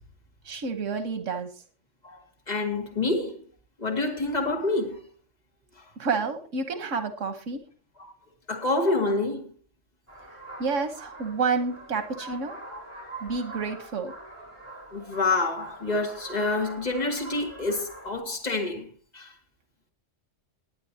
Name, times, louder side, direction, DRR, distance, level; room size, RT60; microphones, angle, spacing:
voice 1, 0.4-1.6 6.0-7.7 10.3-12.5 13.2-14.1, right 4 dB, 85° right, 1.4 m, -30 dB
voice 2, 2.0-3.4 3.8-5.0 5.8-5.9 8.0-8.1 8.5-9.5 12.2-12.4 12.7-12.8 14.9-18.9 19.1-19.3, left 2 dB, 35° left, 2.3 m, -28 dB
sound 1, 10.1-18.2, right 2 dB, 10° left, 3.8 m, -44 dB
20.0 x 9.4 x 2.8 m
omnidirectional pair, 1.3 m